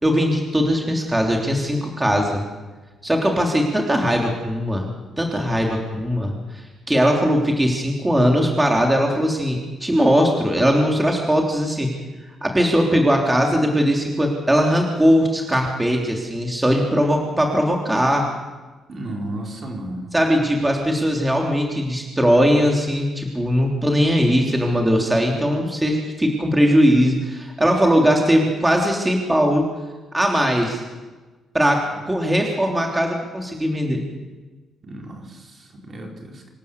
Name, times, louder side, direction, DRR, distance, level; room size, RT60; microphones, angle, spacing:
voice 1, 0.0-2.4 3.0-4.9 5.2-6.3 6.9-11.9 12.4-18.3 20.1-29.7 30.1-30.8 31.5-34.0, equal, 10° right, 1 dB, 3.3 m, -19 dB
voice 2, 18.9-20.1 34.8-36.5, right 1 dB, 45° right, 1 dB, 4.5 m, -33 dB
26.0 x 12.0 x 8.3 m, 1.2 s
cardioid pair, 90°, 0 cm